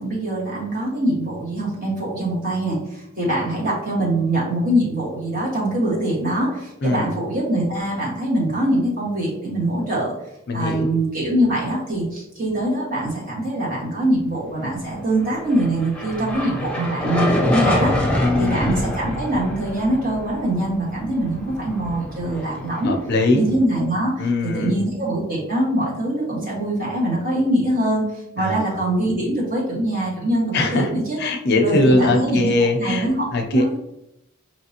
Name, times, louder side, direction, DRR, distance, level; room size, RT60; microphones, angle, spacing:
voice 1, 0.0-10.1 10.5-18.1 18.4-22.9 23.3-28.0 28.3-31.2 31.6-32.5 32.8-33.8, right 1 dB, 45° right, -4 dB, 1.5 m, -23 dB
voice 2, 10.5-10.9 18.2-18.7 22.8-23.5 24.2-24.8 28.4-28.8 30.5-30.9 31.2-33.8, left 2 dB, 50° left, 3 dB, 0.5 m, -21 dB
sound 1, 15.2-23.6, left 1 dB, 5° left, 0.6 m, -26 dB
4.9 x 3.0 x 2.8 m, 0.84 s
head